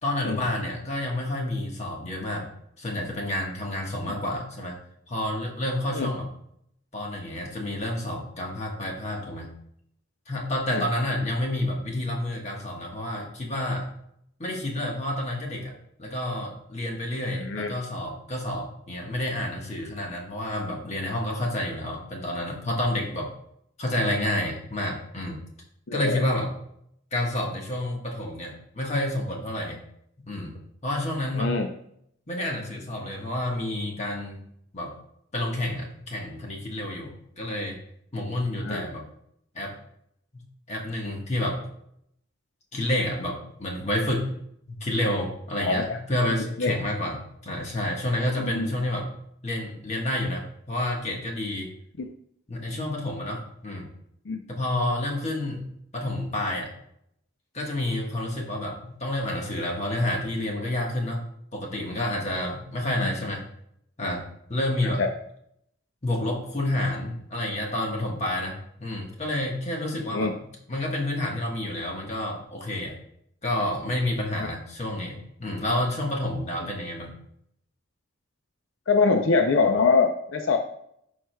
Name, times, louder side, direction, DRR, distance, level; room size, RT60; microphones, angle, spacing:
voice 1, 0.0-2.5 2.8-4.8 5.1-6.3 6.9-9.5 10.3-13.9 14.4-15.7 16.0-23.3 23.8-25.4 25.9-26.5 27.1-29.8 30.3-31.6 32.3-34.4 34.7-34.9 35.3-37.8 38.1-39.0 39.5-39.8 40.3-41.7 42.7-44.3 44.7-49.1 49.4-51.7 52.5-53.9 54.5-56.7 57.5-61.2 61.5-63.4 64.0-65.0 66.0-73.0 73.4-77.1, left 1 dB, 35° left, 0 dB, 1.3 m, -29 dB
voice 2, 17.3-17.7 25.9-26.2 31.4-31.7 38.6-38.8 45.6-46.0 46.6-46.7 48.4-48.7 52.0-52.1 54.3-54.4 63.0-63.1 64.8-65.1 70.1-70.3 78.9-80.6, left 4 dB, 75° left, 5 dB, 0.5 m, -24 dB
11.0 x 4.8 x 2.3 m, 0.71 s
head